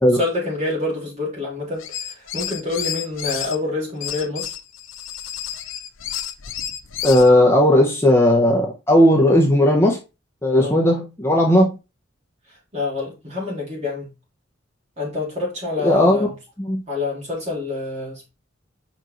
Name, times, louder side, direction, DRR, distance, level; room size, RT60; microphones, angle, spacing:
voice 1, 0.1-4.5 10.6-10.8 12.7-14.1 15.0-16.3 16.9-18.3, left 3 dB, 35° right, 3.5 m, -27 dB
sound 1, 1.8-3.6 4.0-7.3, left 10 dB, 80° left, 0.7 m, -30 dB
voice 2, 7.0-10.0 10.4-11.7 15.8-16.3 16.7-16.8, left 1 dB, 15° left, 0.9 m, -15 dB
5.3 x 4.7 x 3.9 m
head